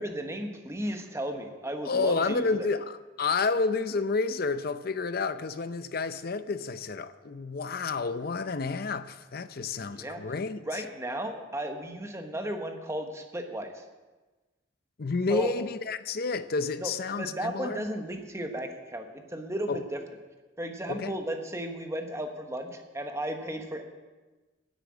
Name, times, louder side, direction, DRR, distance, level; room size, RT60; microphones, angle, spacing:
voice 1, 0.0-2.7 9.9-10.2 10.6-13.8 15.3-15.5 16.8-20.0 20.6-23.8, right 1 dB, 15° right, 1.2 m, -35 dB
voice 2, 1.8-10.8 15.0-17.9 19.7-19.8 20.9-21.1, left 4 dB, 55° left, 0.6 m, -30 dB
10.0 x 8.3 x 8.5 m
head